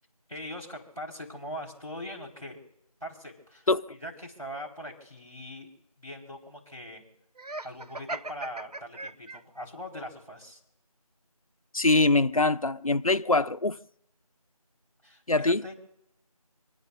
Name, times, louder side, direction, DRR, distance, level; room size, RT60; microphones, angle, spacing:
voice 1, 0.3-2.6 3.0-5.7 6.0-7.0 7.6-10.6 15.0-15.7, equal, 5° right, 3.2 m, -41 dB
Laughter, 7.4-9.7, right 2 dB, 85° right, 0.7 m, -39 dB
voice 2, 11.7-13.8 15.3-15.6, left 2 dB, 65° left, 0.7 m, -23 dB
27.5 x 9.5 x 2.6 m
figure-of-eight pair, 175°, 20 cm